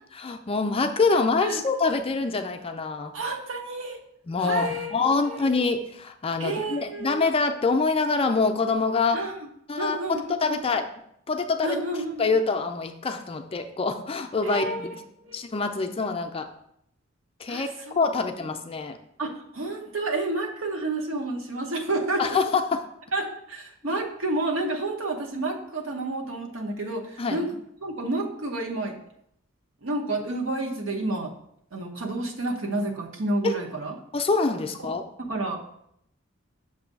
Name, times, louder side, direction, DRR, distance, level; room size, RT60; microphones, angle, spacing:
voice 1, 0.1-3.1 4.3-9.2 9.7-10.9 11.3-11.8 12.2-14.9 15.3-16.5 17.4-19.0 22.2-22.8 23.8-24.0 27.2-27.4 33.4-33.6 34.1-35.0, left 4 dB, 30° left, 6 dB, 0.4 m, -25 dB
voice 2, 3.1-4.0 4.4-4.9 5.2-5.4 6.4-7.2 9.1-9.4 9.8-10.6 11.6-12.3 14.4-14.9 15.2-15.5 17.5-18.0 19.2-22.4 23.1-27.5 27.8-29.0 29.8-31.3 31.7-33.9 35.2-35.6, right 2 dB, 75° right, 1 dB, 1.0 m, -30 dB
6.8 x 2.7 x 5.2 m, 0.73 s
head